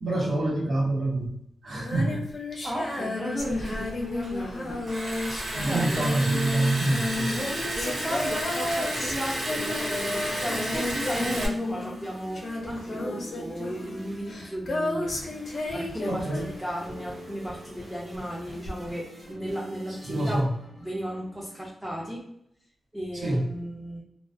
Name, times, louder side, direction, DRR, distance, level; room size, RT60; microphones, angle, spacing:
voice 1, 0.0-1.3 1.6-2.2 5.5-7.4 16.1-16.5 20.1-20.5 23.1-23.5, right 2 dB, 90° right, -8 dB, 1.2 m, -26 dB
Female singing, 1.7-17.1 18.7-18.8, left 2 dB, 45° left, 0.5 m, -32 dB
voice 2, 2.6-5.2 5.6-6.1 7.8-15.5 15.7-20.5 20.8-22.3 22.9-24.0, equal, 10° right, -4 dB, 0.4 m, -35 dB
Liquid, 3.4-11.5, right 1 dB, 45° right, 0.7 m, -32 dB
sound 1, 8.9-21.7, equal, 65° right, 1.1 m, -45 dB
2.3 x 2.3 x 2.4 m, 0.75 s
wide cardioid pair, 150°, 0 cm